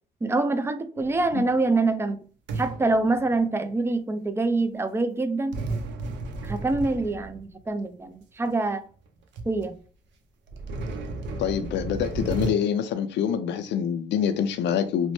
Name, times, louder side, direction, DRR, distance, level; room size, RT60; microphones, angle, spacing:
voice 1, 0.2-2.2 2.6-5.6 6.4-8.8 9.5-9.8, right 3 dB, 15° right, 0.3 m, -25 dB
sound 1, 1.0-1.6 2.5-3.7 5.5-7.7 8.5-8.6 9.1-9.2 9.4-9.7 10.5-12.5, right 3 dB, 75° right, 0.6 m, -33 dB
voice 2, 11.4-15.1, left 8 dB, 75° left, 0.4 m, -26 dB
3.0 x 2.0 x 3.0 m
cardioid pair, 95°, 19 cm